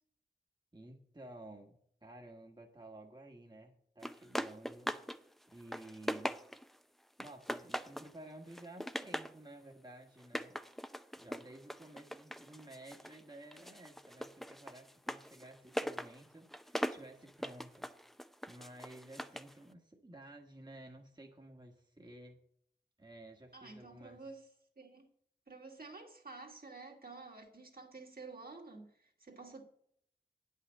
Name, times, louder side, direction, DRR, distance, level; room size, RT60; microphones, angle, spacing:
voice 1, 0.7-1.8 2.0-4.9 5.5-6.3 7.2-10.6 11.2-17.9 18.5-22.4 23.0-24.2, right 1 dB, 25° right, 1.3 m, -53 dB
sound 1, 4.0-5.2 5.5-6.8 7.2-8.1 8.5-9.4 10.2-13.2 13.5-19.5, equal, ahead, 0.6 m, -41 dB
voice 2, 23.5-24.5 24.8-25.1 25.5-29.6, right 3 dB, 60° right, 2.1 m, -50 dB
9.3 x 5.7 x 7.5 m
wide cardioid pair, 45°, 17 cm